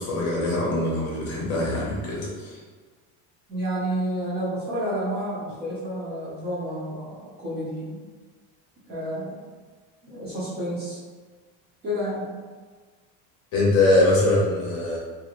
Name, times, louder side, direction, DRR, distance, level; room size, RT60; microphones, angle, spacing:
voice 1, 0.0-2.6 13.5-15.0, left 2 dB, 35° left, -5 dB, 0.7 m, -22 dB
voice 2, 3.5-8.0 8.9-9.4 10.0-11.0 11.8-12.2, equal, 25° right, -8 dB, 0.5 m, -30 dB
2.6 x 2.5 x 2.8 m, 1.5 s
cardioid pair, 170°, 41 cm